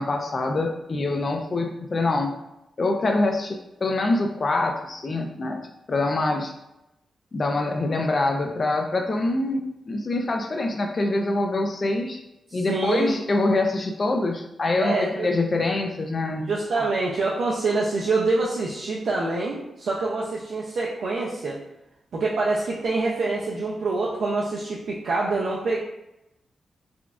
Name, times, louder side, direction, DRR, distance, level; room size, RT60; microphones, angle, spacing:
voice 1, 0.0-2.3 2.8-5.6 5.9-6.5 7.3-12.2 12.5-16.5 16.8-16.9, left 2 dB, 40° left, 2 dB, 0.4 m, -25 dB
voice 2, 12.5-13.1 14.8-15.3 16.4-21.6 22.1-25.8, right 3 dB, 65° right, -4 dB, 0.5 m, -26 dB
4.8 x 2.4 x 2.5 m, 0.89 s
cardioid pair, 110°, 0 cm